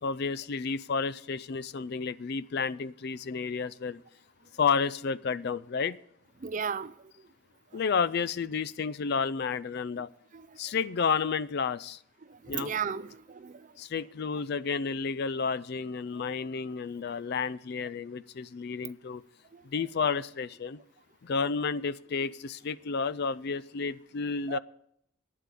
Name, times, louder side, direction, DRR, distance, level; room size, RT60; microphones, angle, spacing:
voice 1, 0.0-4.0 4.6-6.0 7.7-10.1 10.6-12.0 12.5-12.7 13.8-19.2 19.6-20.8 21.2-24.6, left 5 dB, 50° left, 0.4 m, -31 dB
voice 2, 6.4-6.9 10.3-10.5 12.3-13.7 14.4-14.5 19.5-19.6 24.5-24.6, right 6 dB, 35° right, 0.4 m, -35 dB
11.5 x 9.5 x 6.8 m
head